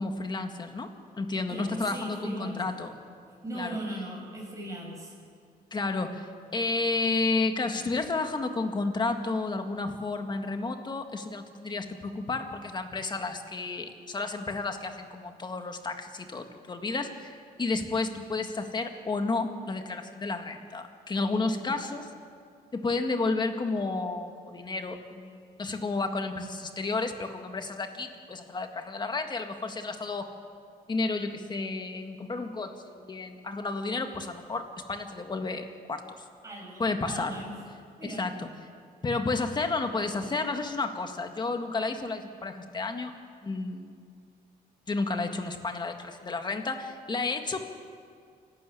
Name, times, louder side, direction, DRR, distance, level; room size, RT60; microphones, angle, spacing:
voice 1, 0.0-2.9 3.5-3.8 5.7-22.1 22.7-30.3 30.9-36.2 36.8-37.4 38.0-38.5 39.0-43.1 43.4-43.9 44.9-47.6, left 3 dB, 25° left, 6 dB, 1.8 m, -31 dB
voice 2, 1.5-2.6 3.4-5.1 21.6-22.0 36.4-37.6 38.0-38.2, right 1 dB, 20° right, -1 dB, 7.3 m, -39 dB
27.5 x 12.5 x 8.5 m, 2.2 s
cardioid pair, 120°, 16 cm